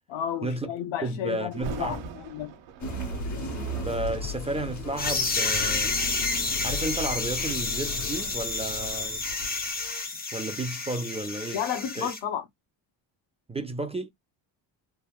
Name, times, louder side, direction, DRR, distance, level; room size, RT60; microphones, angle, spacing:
voice 1, 0.1-2.5 11.5-12.5, left 9 dB, 80° left, 0.9 m, -32 dB
voice 2, 1.0-2.0 3.8-6.0 6.6-9.2 10.3-11.6 12.0-12.1 13.5-14.1, right 2 dB, 15° right, 0.4 m, -32 dB
Thunder, 1.5-6.5 7.1-7.4 8.0-10.8 11.2-11.3, right 5 dB, 90° right, 1.0 m, -43 dB
sound 1, 2.8-9.8, left 1 dB, 40° left, 1.6 m, -36 dB
sound 2, 5.0-12.2, left 3 dB, 20° left, 0.8 m, -30 dB
3.4 x 2.2 x 2.3 m
cardioid pair, 135°, 45 cm